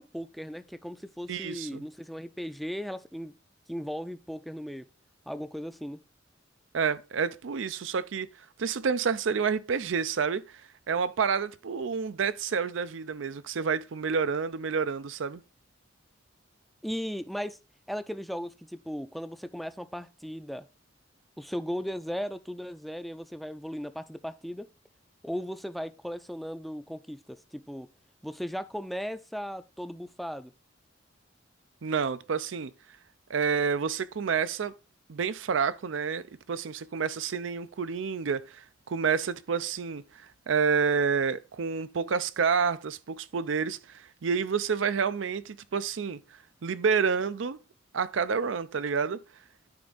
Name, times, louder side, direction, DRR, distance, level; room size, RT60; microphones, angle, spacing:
voice 1, 0.0-3.3 3.7-4.9 5.3-6.0 16.8-17.6 17.9-20.7 21.4-24.7 25.2-27.9 28.2-30.5, equal, ahead, 0.4 m, -37 dB
voice 2, 1.3-1.8 6.7-8.3 8.6-10.6 10.9-15.4 31.8-32.7 33.3-34.7 35.1-36.2 36.5-46.2 46.6-47.6 47.9-49.2, right 6 dB, 80° right, 0.5 m, -29 dB
9.7 x 3.5 x 3.9 m
head